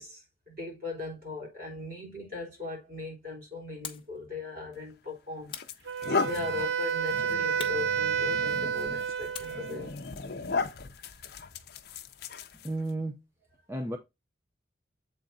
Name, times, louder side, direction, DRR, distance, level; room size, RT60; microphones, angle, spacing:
voice 1, 0.0-5.6 6.2-10.2, left 3 dB, 50° right, 3.7 m, -39 dB
sound 1, 3.8-4.2 5.5-6.4 7.6-8.7 9.3-11.6, left 8 dB, 25° left, 0.9 m, -46 dB
sound 2, 4.7-4.9 5.5-12.9, left 4 dB, 55° left, 0.7 m, -36 dB
Wind instrument woodwind instrument, 5.9-9.9, right 7 dB, 65° right, 0.5 m, -30 dB
voice 2, 12.6-13.2 13.7-14.0, right 2 dB, 10° right, 0.6 m, -32 dB
7.6 x 4.2 x 3.8 m
head